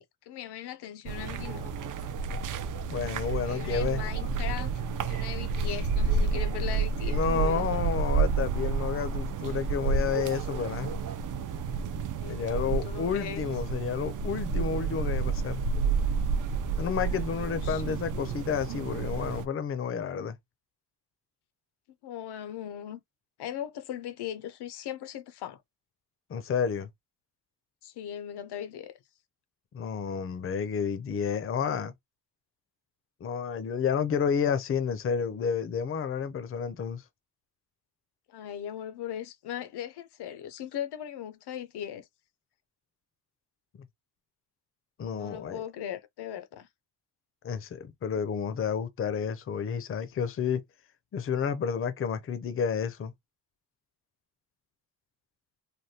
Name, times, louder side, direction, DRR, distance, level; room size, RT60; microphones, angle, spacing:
voice 1, 0.0-1.8 3.5-4.7 5.0-7.7 12.1-13.5 17.3-18.0 22.0-23.0 23.4-25.6 27.8-28.9 38.3-42.1 45.1-46.7, left 10 dB, 85° left, 0.6 m, -39 dB
sound 1, 1.1-19.5, right 5 dB, 55° right, 0.5 m, -30 dB
voice 2, 2.9-4.0 7.1-10.9 12.3-15.6 16.7-20.4 26.3-26.9 29.7-31.9 33.2-37.0 45.0-45.6 47.4-50.6 51.1-53.1, left 7 dB, 35° left, 0.5 m, -30 dB
3.3 x 2.2 x 2.7 m
cardioid pair, 125°, 38 cm